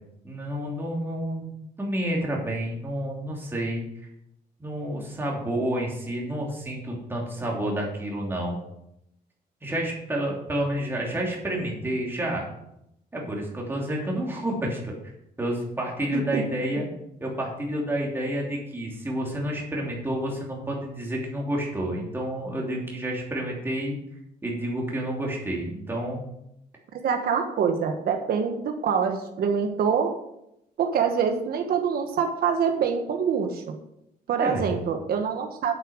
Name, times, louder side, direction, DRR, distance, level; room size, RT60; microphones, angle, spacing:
voice 1, 0.2-3.8 4.6-8.6 9.6-12.4 13.1-14.9 15.4-16.9 17.2-23.9 24.4-26.2 34.4-34.7, right 1 dB, 15° right, -2 dB, 3.1 m, -29 dB
voice 2, 27.0-30.1 30.8-33.7 34.3-35.7, right 6 dB, 65° right, 4 dB, 1.4 m, -25 dB
9.1 x 8.4 x 6.5 m, 0.80 s
cardioid pair, 160°, 17 cm